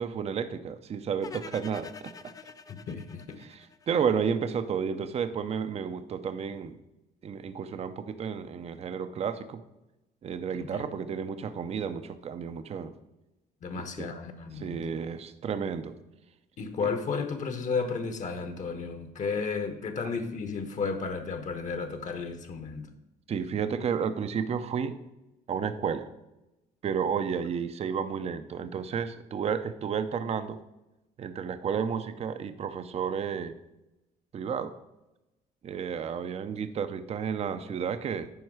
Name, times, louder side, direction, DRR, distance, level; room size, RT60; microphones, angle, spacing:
voice 1, 0.0-2.1 3.4-6.8 7.2-9.6 10.2-12.9 13.7-14.1 14.5-16.0 23.3-25.0 25.5-26.1 26.8-30.6 31.2-33.5 34.3-34.7 35.6-38.3, right 7 dB, 40° right, 11 dB, 0.6 m, -32 dB
sound 1, 1.2-4.4, left 5 dB, 20° left, 0.4 m, -46 dB
voice 2, 2.7-3.4 10.5-10.8 13.6-14.8 16.6-22.9, left 5 dB, 45° left, 8 dB, 1.1 m, -33 dB
9.3 x 5.3 x 4.8 m, 0.95 s
cardioid pair, 110°, 17 cm